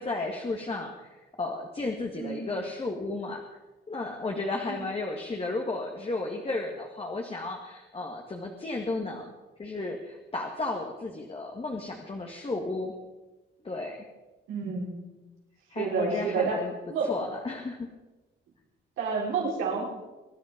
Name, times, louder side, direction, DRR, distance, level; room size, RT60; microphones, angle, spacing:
voice 1, 0.0-3.4 3.9-9.3 9.6-12.9 13.6-14.0 15.7-16.7 17.0-17.9, left 2 dB, 30° left, 1 dB, 2.1 m, -33 dB
voice 2, 2.2-2.5 14.5-15.1 15.8-16.6 16.9-17.3 19.0-19.9, right 4 dB, 85° right, -3 dB, 5.6 m, -29 dB
23.5 x 10.5 x 5.3 m, 1.1 s
cardioid pair, 90°, 20 cm